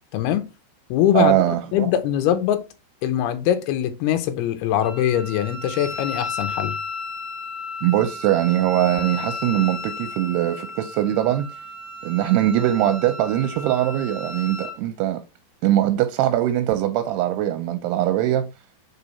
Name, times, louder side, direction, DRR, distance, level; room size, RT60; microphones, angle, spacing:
voice 1, 0.1-0.4 0.9-1.4 1.7-2.6 3.0-6.8, left 10 dB, 75° left, 2.5 m, -22 dB
voice 2, 1.1-1.9 7.8-11.5 12.0-15.2 15.6-18.5, right 13 dB, 80° right, 2.5 m, -21 dB
Wind instrument woodwind instrument, 4.8-14.8, left 3 dB, 35° left, 0.7 m, -34 dB
5.4 x 4.7 x 4.1 m
omnidirectional pair, 5.0 m